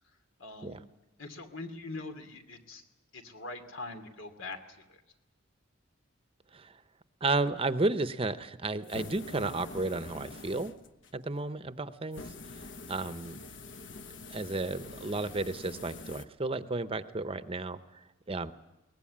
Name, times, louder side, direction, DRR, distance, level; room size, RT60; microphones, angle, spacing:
voice 1, 0.4-0.8 1.2-2.8 3.1-5.0 13.1-13.2, left 3 dB, 85° left, 7 dB, 2.7 m, -43 dB
voice 2, 7.2-10.7 11.1-13.4 14.3-18.5, right 2 dB, 30° right, 12 dB, 0.7 m, -33 dB
sound 1, 8.8-11.2 12.1-16.3, left 2 dB, 65° left, 1.0 m, -45 dB
22.5 x 19.0 x 8.6 m, 1.0 s
head